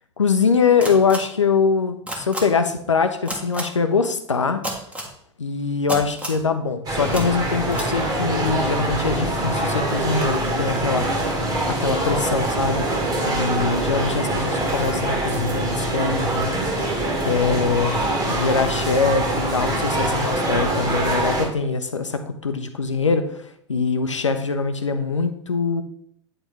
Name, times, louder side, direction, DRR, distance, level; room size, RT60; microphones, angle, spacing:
voice 1, 0.2-4.6 5.4-11.1 11.7-12.9 13.3-16.5 17.2-17.9 18.2-23.4 23.7-25.8, left 5 dB, 80° left, 9 dB, 0.7 m, -23 dB
sound 1, 0.8-1.2 2.1-2.4 3.3-3.6 4.6-5.1 5.9-6.4 7.1-7.2 7.7-7.9, right 1 dB, 10° right, 1.5 m, -29 dB
sound 2, 6.9-21.5, right 1 dB, 25° right, 1.8 m, -24 dB
8.8 x 4.4 x 3.4 m, 0.65 s
figure-of-eight pair, 90°, 15 cm